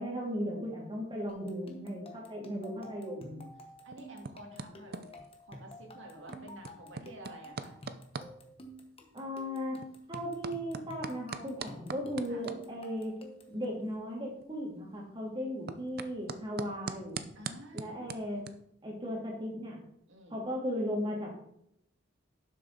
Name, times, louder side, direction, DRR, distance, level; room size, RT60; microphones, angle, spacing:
voice 1, 0.0-3.4 9.1-13.2 13.5-17.2 17.7-18.5 18.8-19.8 20.3-21.3, equal, 25° right, -2 dB, 2.7 m, -36 dB
sound 1, 1.3-13.6, equal, 30° left, 1.2 m, -51 dB
voice 2, 2.4-3.5 3.8-5.1 5.5-7.8 12.3-12.5 17.4-18.1 20.1-20.5, right 1 dB, 75° right, 2 dB, 2.2 m, -50 dB
sound 2, 3.4-18.5, right 4 dB, 55° right, 0.6 m, -46 dB
11.5 x 6.6 x 4.0 m, 0.74 s
head